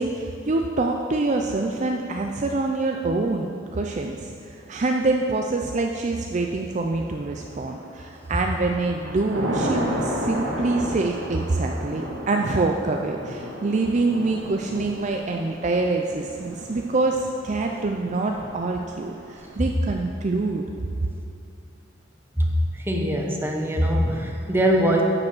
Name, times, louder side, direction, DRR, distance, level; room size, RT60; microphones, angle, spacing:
voice 1, 0.0-20.6, right 3 dB, 40° right, 2 dB, 0.5 m, -25 dB
Thunder / Rain, 7.4-8.0 8.4-19.5, equal, 75° right, 1.8 m, -33 dB
voice 2, 22.9-25.0, right 1 dB, 10° right, 0 dB, 1.0 m, -22 dB
10.5 x 5.4 x 7.2 m, 2.6 s
head